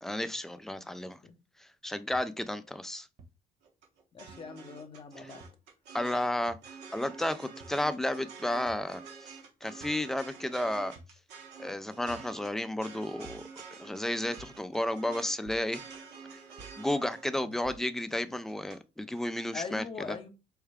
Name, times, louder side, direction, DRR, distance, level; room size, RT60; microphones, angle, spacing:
voice 1, 0.0-1.2 1.8-3.1 5.2-5.3 5.9-6.6 6.9-9.4 9.6-10.9 11.6-13.4 13.8-15.8 16.8-20.2, left 1 dB, ahead, 0.4 m, -32 dB
sound 1, 2.1-2.2 3.2-3.3 4.3-4.4 5.4-5.6 6.5-6.7 7.6-7.8 8.7-8.9 9.8-10.0 11.0-11.2 12.1-12.3 13.2-13.5 14.4-14.6 15.5-15.7 16.6-16.8 17.6-17.9, right 3 dB, 45° right, 1.1 m, -51 dB
sound 2, 3.6-18.8 19.2-19.6, right 5 dB, 80° right, 1.3 m, -48 dB
voice 2, 4.1-5.5 17.4-17.6 19.5-20.3, left 5 dB, 30° left, 0.8 m, -42 dB
4.6 x 2.2 x 3.4 m
cardioid pair, 110°, 17 cm